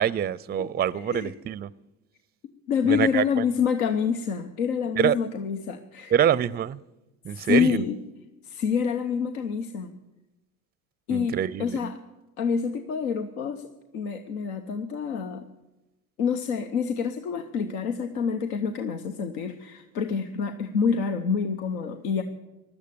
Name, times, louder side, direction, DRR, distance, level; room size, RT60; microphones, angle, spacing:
voice 1, 0.0-1.7 2.8-3.4 4.9-5.2 6.1-6.8 7.2-7.8 11.1-11.9, right 9 dB, 25° right, 0.4 m, -25 dB
voice 2, 0.6-1.3 2.7-6.1 7.3-7.9 8.4-9.9 11.1-12.0 12.4-13.7 13.9-15.4 16.2-22.2, left 6 dB, 85° left, 0.9 m, -27 dB
16.0 x 11.5 x 6.9 m
hypercardioid pair, 65°, 42 cm